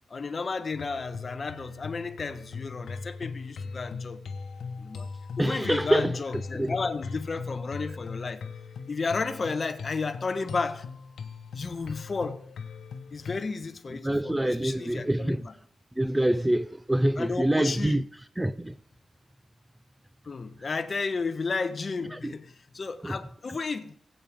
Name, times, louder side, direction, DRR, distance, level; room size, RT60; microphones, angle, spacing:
voice 1, 0.1-4.2 4.8-5.1 5.4-8.4 8.9-10.9 11.5-12.4 13.1-15.5 17.2-18.0 20.2-23.9, left 4 dB, 35° left, 1.2 m, -32 dB
sound 1, 0.7-13.4, left 5 dB, 85° left, 1.2 m, -40 dB
voice 2, 5.4-6.2 6.6-6.7 14.0-15.4 16.0-18.0 18.4-18.7 22.2-22.3 23.0-23.2, right 1 dB, 10° right, 0.4 m, -25 dB
20.5 x 8.8 x 3.7 m
wide cardioid pair, 135°, 0 cm